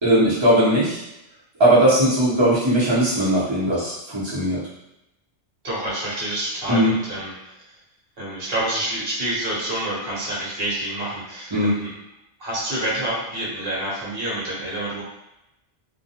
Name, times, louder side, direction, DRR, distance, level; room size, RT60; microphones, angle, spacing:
voice 1, 0.0-1.0 1.6-4.6 6.7-6.9 11.5-11.7, right 1 dB, 25° right, -9 dB, 0.8 m, -18 dB
voice 2, 5.6-7.3 8.2-11.9 12.4-15.0, right 1 dB, 55° right, -7 dB, 1.1 m, -27 dB
2.3 x 2.2 x 2.8 m, 0.89 s
omnidirectional pair, 1.2 m